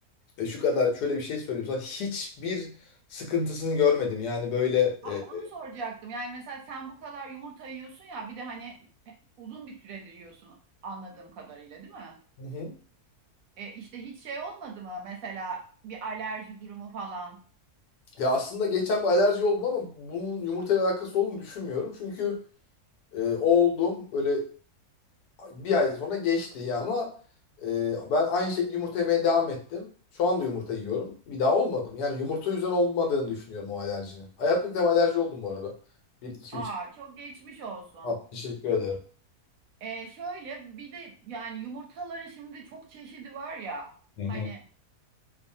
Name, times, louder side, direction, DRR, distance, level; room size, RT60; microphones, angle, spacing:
voice 1, 0.4-2.7 3.1-5.5 12.4-12.7 18.2-22.4 23.1-24.4 25.4-27.1 27.6-29.9 30.2-35.7 36.2-36.6 38.0-39.0 44.2-44.5, left 4 dB, 85° left, 2 dB, 1.2 m, -27 dB
voice 2, 5.0-8.7 9.1-10.6 10.8-12.2 13.6-17.4 36.5-38.1 39.8-43.9 44.3-44.6, right 4 dB, 70° right, 1 dB, 0.9 m, -39 dB
2.6 x 2.6 x 2.6 m, 0.42 s
omnidirectional pair, 1.7 m